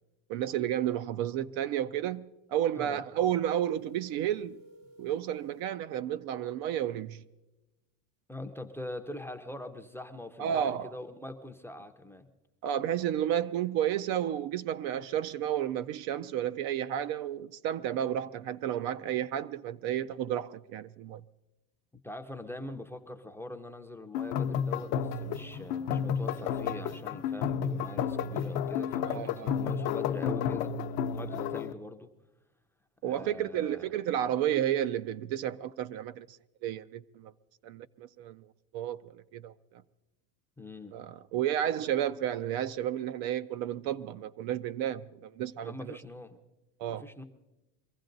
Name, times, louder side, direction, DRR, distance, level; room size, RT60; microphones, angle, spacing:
voice 1, 0.3-4.6 5.0-7.2 10.4-10.9 12.6-21.2 29.0-29.6 33.0-36.4 36.6-37.3 37.6-38.5 38.7-39.5 40.9-46.0 46.8-47.0, right 10 dB, 55° right, 0.5 m, -32 dB
sound 1, 3.6-5.7, right 2 dB, 85° right, 1.7 m, -55 dB
voice 2, 8.3-12.3 22.0-30.7 31.1-32.1 33.1-33.8 40.6-41.0 45.6-46.4 46.9-47.2, left 1 dB, 5° left, 0.5 m, -43 dB
sound 2, 24.1-31.7, left 7 dB, 60° left, 0.8 m, -31 dB
23.5 x 15.0 x 3.9 m
supercardioid pair, 135°, 45 cm